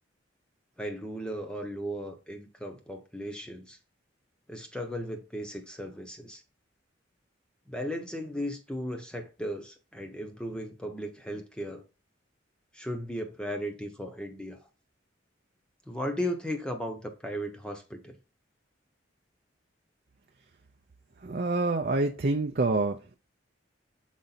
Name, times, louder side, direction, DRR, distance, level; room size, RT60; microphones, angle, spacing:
voice 1, 0.8-3.8 4.5-6.4 7.7-11.8 12.7-14.6 15.9-18.2, equal, 5° left, 0.8 m, -36 dB
voice 2, 21.2-23.0, right 3 dB, 50° right, 0.6 m, -26 dB
7.6 x 4.1 x 4.1 m
head